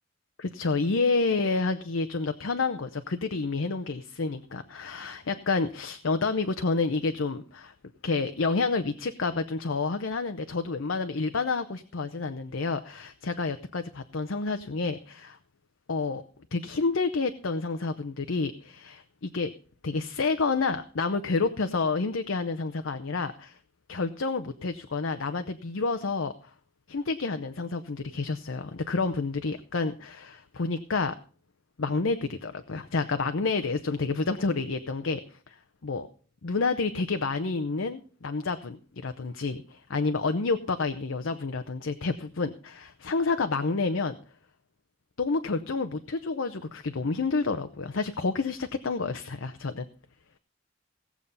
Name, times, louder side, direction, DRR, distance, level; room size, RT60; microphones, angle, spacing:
voice 1, 0.4-7.7 8.0-15.4 15.9-16.2 16.5-19.5 19.8-23.6 23.9-26.5 26.9-31.2 31.8-36.1 36.4-44.2 45.2-49.9, left 4 dB, 90° left, 8 dB, 0.7 m, -29 dB
17.5 x 7.2 x 5.3 m, 0.41 s
head